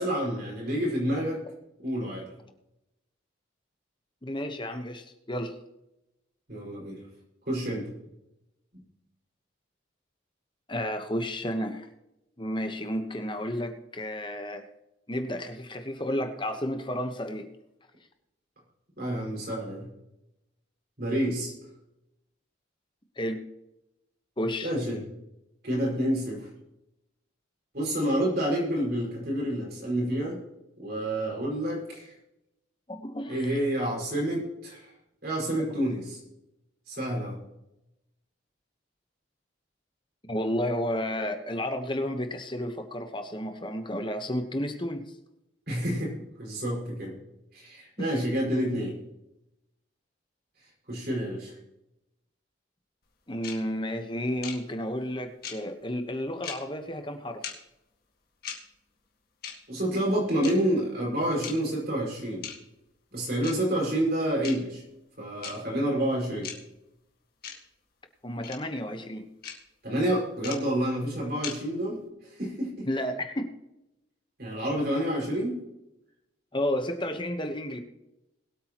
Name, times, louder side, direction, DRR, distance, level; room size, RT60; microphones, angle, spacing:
voice 1, 0.0-1.4 1.8-2.3 6.5-7.0 7.5-7.9 8.7-8.8 19.0-19.9 21.0-21.5 24.6-25.0 25.6-26.5 27.7-30.4 30.8-32.1 33.3-34.9 35.2-36.2 36.9-37.4 45.7-47.2 47.5-48.9 50.9-51.6 59.7-62.5 63.1-64.8 65.2-66.5 69.8-72.9 74.4-75.6, right 1 dB, 50° right, -3 dB, 5.6 m, -29 dB
voice 2, 4.2-5.6 10.7-11.9 12.4-14.7 15.1-17.5 23.2-23.4 24.4-24.7 32.9-33.6 40.3-45.0 48.0-48.2 53.3-57.4 68.2-69.3 72.9-73.5 76.5-77.8, equal, 25° left, 7 dB, 1.2 m, -32 dB
sound 1, 53.4-53.6 54.4-54.6 55.4-55.6 56.4-56.6 57.4-57.5 58.4-58.6 59.4-59.6 60.4-60.5 61.4-61.5 62.4-62.6 63.4-63.5 64.4-64.5 65.4-65.5 66.4-66.6 67.4-67.6 68.4-68.6 69.4-69.6 70.4-70.6 71.4-71.5, left 8 dB, 50° left, 2.0 m, -36 dB
21.5 x 8.6 x 3.0 m, 0.90 s
head